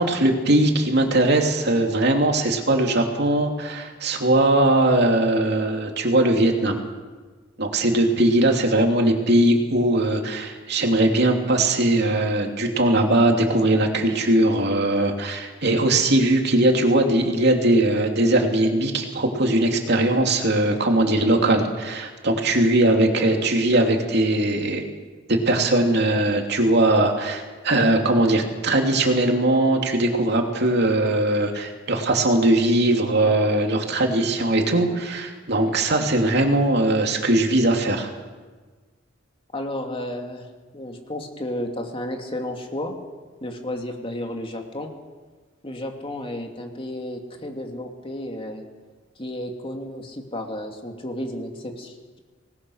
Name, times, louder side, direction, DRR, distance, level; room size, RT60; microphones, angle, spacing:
voice 1, 0.0-6.8 7.6-24.8 25.3-38.1, right 1 dB, 60° right, 3 dB, 3.0 m, -20 dB
voice 2, 39.5-40.5 40.7-42.9 43.4-44.9 45.6-48.6 49.2-52.2, left 1 dB, 30° left, 3 dB, 2.8 m, -32 dB
24.5 x 19.5 x 6.5 m, 1.4 s
head